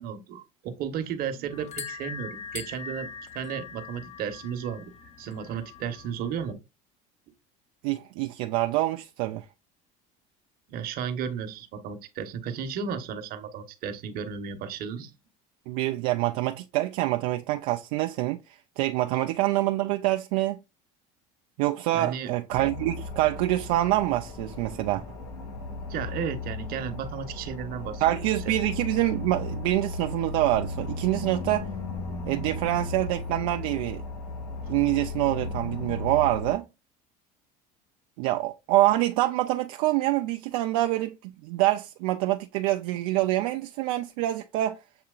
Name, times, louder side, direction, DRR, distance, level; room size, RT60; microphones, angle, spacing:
voice 1, 0.0-3.1 3.3-4.8 5.2-6.6 10.7-15.1 21.9-22.3 25.9-28.2 28.4-28.6, right 7 dB, 55° right, 1.0 m, -34 dB
sound 1, 1.5-6.5, left 6 dB, 40° left, 0.8 m, -42 dB
voice 2, 7.8-9.4 15.7-20.6 21.6-25.0 28.0-31.7 32.3-34.0 34.7-36.6 38.2-44.8, right 16 dB, 80° right, 0.4 m, -26 dB
sound 2, 22.5-36.5, left 3 dB, 85° left, 1.9 m, -36 dB
7.5 x 2.9 x 2.3 m
supercardioid pair, 105°, 18 cm